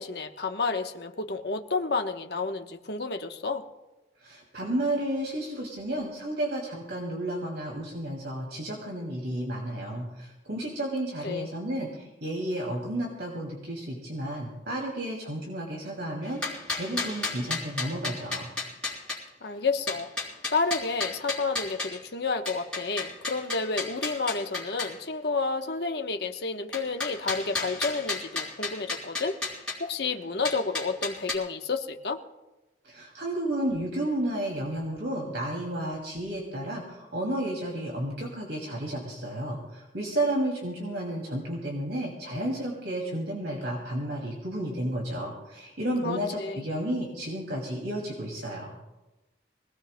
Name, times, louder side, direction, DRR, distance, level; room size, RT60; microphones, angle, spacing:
voice 1, 0.0-3.6 11.2-11.5 19.4-20.1 20.5-29.4 29.8-32.2 46.0-46.7, left 4 dB, 60° left, 5 dB, 1.0 m, -30 dB
voice 2, 4.2-18.5 32.8-48.7, right 1 dB, 70° right, -1 dB, 2.6 m, -32 dB
sound 1, 16.2-19.2 19.9-22.0 22.5-24.9 26.7-29.8 30.4-31.3, left 3 dB, 5° left, 3.6 m, -33 dB
24.5 x 18.0 x 2.2 m, 1.0 s
head